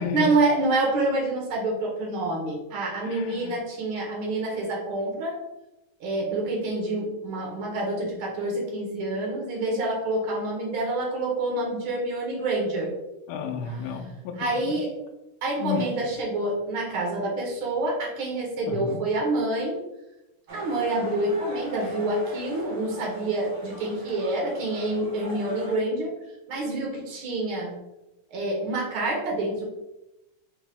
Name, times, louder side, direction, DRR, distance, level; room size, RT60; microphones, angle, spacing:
voice 1, 0.1-5.4 6.0-12.9 13.7-13.8 14.4-14.9 15.4-19.8 20.5-26.1 26.5-27.7 28.3-29.6, right 2 dB, 90° right, -1 dB, 1.1 m, -27 dB
voice 2, 3.0-3.5 13.3-14.8 15.6-15.9 18.7-19.0, left 6 dB, 80° left, 1 dB, 2.1 m, -32 dB
sound 1, 20.5-25.8, right 1 dB, 60° right, 1.2 m, -40 dB
5.2 x 3.0 x 3.4 m, 0.95 s
omnidirectional pair, 3.8 m